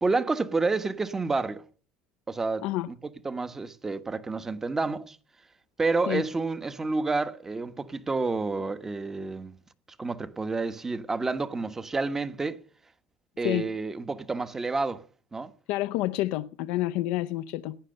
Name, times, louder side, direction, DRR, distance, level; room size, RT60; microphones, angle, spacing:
voice 1, 0.0-1.6 2.3-2.9 3.2-5.2 5.8-9.6 10.0-12.6 13.4-15.0 15.3-15.5, right 3 dB, 20° right, 1.3 m, -29 dB
voice 2, 15.7-17.8, left 16 dB, 75° left, 0.6 m, -28 dB
17.5 x 10.0 x 6.6 m
supercardioid pair, 100°, 2 cm